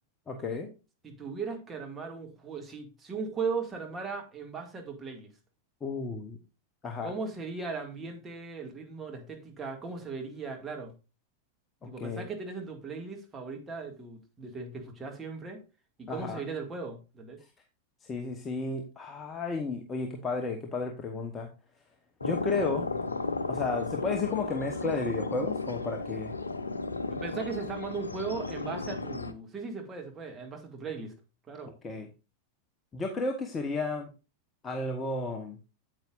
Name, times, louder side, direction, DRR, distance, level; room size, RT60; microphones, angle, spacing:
voice 1, 0.3-0.7 5.8-6.4 6.8-7.1 11.8-12.3 16.1-16.4 18.1-21.5 22.2-22.9 23.5-26.3 31.8-32.1 32.9-34.1 34.6-35.6, left 3 dB, 20° left, 1.1 m, -33 dB
voice 2, 1.0-5.3 7.0-10.9 11.8-15.6 16.0-17.4 27.1-31.1 31.5-31.7, right 4 dB, 20° right, 2.0 m, -37 dB
sound 1, 22.2-29.3, left 3 dB, 80° left, 0.6 m, -34 dB
8.8 x 8.1 x 2.5 m
figure-of-eight pair, 90°, 0 cm